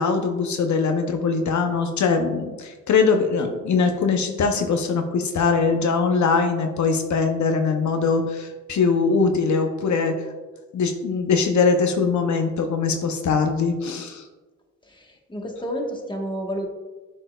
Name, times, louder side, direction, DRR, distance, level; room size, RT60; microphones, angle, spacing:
voice 1, 0.0-10.1 10.7-14.2, left 4 dB, 80° left, 5 dB, 0.6 m, -22 dB
voice 2, 14.8-16.6, equal, 15° left, 1 dB, 1.1 m, -30 dB
9.9 x 4.2 x 2.2 m, 1.2 s
cardioid pair, 75°, 29 cm